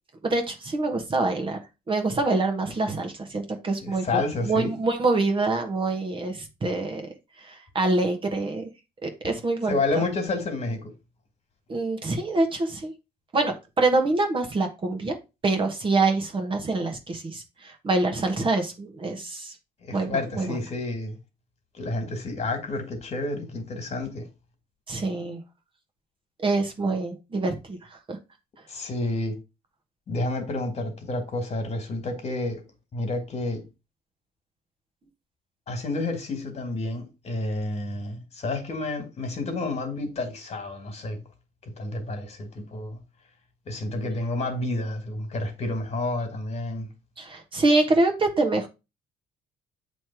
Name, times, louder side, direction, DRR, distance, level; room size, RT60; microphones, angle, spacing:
voice 1, 0.2-1.6 1.9-7.0 7.4-8.7 9.0-10.0 11.7-12.9 13.3-15.2 15.4-19.5 19.9-20.5 24.9-25.4 26.4-28.2 47.2-48.7, right 2 dB, 30° right, 1.2 m, -25 dB
voice 2, 3.8-4.7 9.7-10.9 19.8-21.2 21.7-24.2 28.7-29.4 30.1-32.6 32.9-33.6 35.7-41.2 41.6-43.0 43.7-46.9, left 2 dB, 40° left, 1.9 m, -30 dB
7.3 x 3.3 x 4.5 m
cardioid pair, 110°, 17 cm